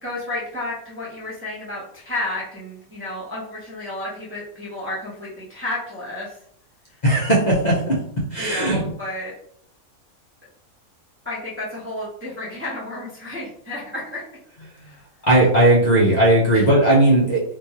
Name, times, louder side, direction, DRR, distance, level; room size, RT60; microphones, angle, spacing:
voice 1, 0.0-6.4 8.4-9.3 11.2-14.2 14.8-15.0 16.5-16.6, left 2 dB, 10° right, -6 dB, 0.7 m, -31 dB
voice 2, 7.0-8.0 8.3-8.8 15.3-17.4, right 1 dB, 35° left, -6 dB, 0.8 m, -17 dB
3.7 x 2.5 x 2.9 m, 0.65 s
omnidirectional pair, 1.5 m